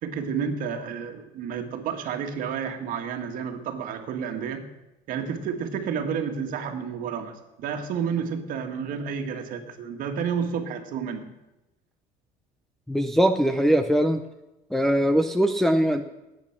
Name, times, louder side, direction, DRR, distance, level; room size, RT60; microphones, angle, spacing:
voice 1, 0.0-4.6 5.1-11.3, right 7 dB, 50° right, 6 dB, 1.7 m, -30 dB
voice 2, 12.9-14.2 14.7-16.1, equal, ahead, 4 dB, 0.5 m, -21 dB
18.5 x 8.9 x 5.9 m, 0.98 s
cardioid pair, 170°, 18 cm